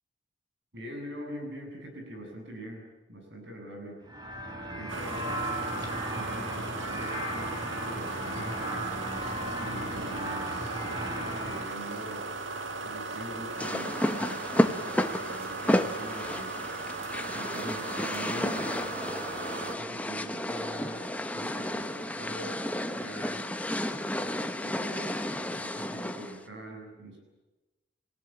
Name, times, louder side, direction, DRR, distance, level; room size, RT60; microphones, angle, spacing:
voice 1, 0.7-4.0 4.7-5.5 6.1-8.9 9.6-12.2 12.8-14.5 14.8-16.6 17.3-19.0 19.7-23.5 24.2-27.2, right 1 dB, 65° right, 2 dB, 7.9 m, -43 dB
sound 1, 4.0-11.6, right 1 dB, 20° right, 4.0 m, -36 dB
sound 2, 4.9-19.8, right 3 dB, 85° right, 1.7 m, -37 dB
sound 3, 13.6-26.4, left 1 dB, 10° left, 1.0 m, -32 dB
28.0 x 17.0 x 8.9 m, 1.1 s
head